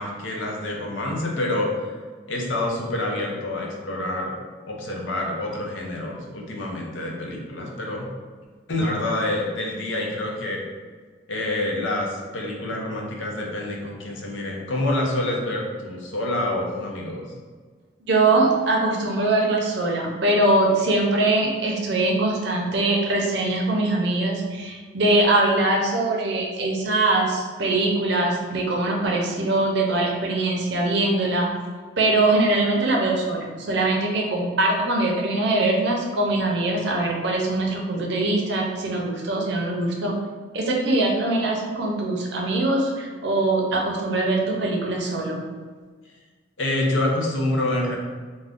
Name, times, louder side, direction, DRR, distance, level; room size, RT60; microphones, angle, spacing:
voice 1, 0.0-1.7 2.3-4.4 4.6-8.1 8.7-10.6 11.3-17.3 46.6-48.0, left 1 dB, 80° left, -1 dB, 0.6 m, -27 dB
voice 2, 18.1-31.5 32.0-40.2 40.5-45.4, right 2 dB, 65° right, 0 dB, 0.5 m, -22 dB
2.4 x 2.1 x 3.4 m, 1.5 s
head